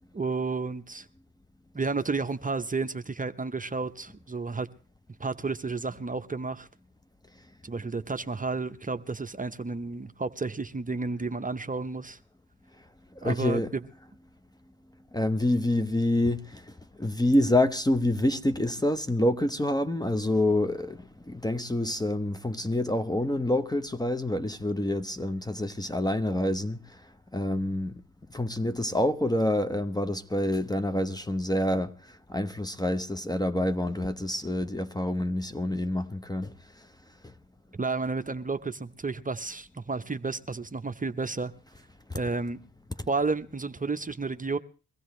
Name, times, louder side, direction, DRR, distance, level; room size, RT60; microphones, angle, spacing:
voice 1, 0.1-1.1 1.7-4.7 5.2-6.7 7.6-12.2 13.2-13.6 37.8-41.5 42.1-42.6 43.1-44.6, right 4 dB, 25° right, 0.9 m, -31 dB
voice 2, 13.2-13.7 15.1-16.7 17.0-27.0 27.3-28.0 28.3-36.6 37.2-37.3 42.1-42.2 43.0-43.1, left 1 dB, 10° left, 0.9 m, -27 dB
23.0 x 15.5 x 3.2 m
cardioid pair, 65°, 34 cm